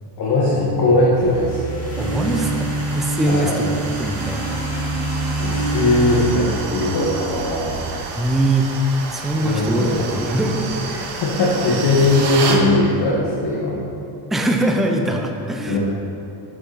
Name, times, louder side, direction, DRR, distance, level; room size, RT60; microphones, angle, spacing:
voice 1, 0.2-1.6 3.3-3.6 5.4-7.8 9.3-10.2 10.8-13.8 15.7-15.8, left 2 dB, 50° left, -6 dB, 1.6 m, -19 dB
sound 1, 1.1-7.3, right 2 dB, 30° left, 1.9 m, -26 dB
sound 2, 1.8-12.6, right 4 dB, 55° right, 1.1 m, -31 dB
voice 2, 2.0-2.7 3.0-4.6 8.2-8.7 9.1-10.7 14.3-15.8, right 1 dB, ahead, 3 dB, 0.5 m, -22 dB
7.7 x 6.2 x 4.1 m, 2.7 s
supercardioid pair, 105°, 48 cm